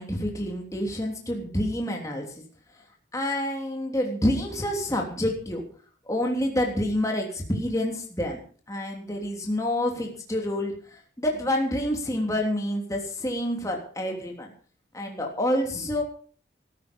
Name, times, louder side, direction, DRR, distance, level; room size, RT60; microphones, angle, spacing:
voice 1, 0.0-2.4 3.1-5.6 6.1-8.4 8.7-14.5 14.9-16.0, left 1 dB, 15° left, 1 dB, 3.2 m, -28 dB
15.5 x 13.5 x 5.3 m, 0.43 s
head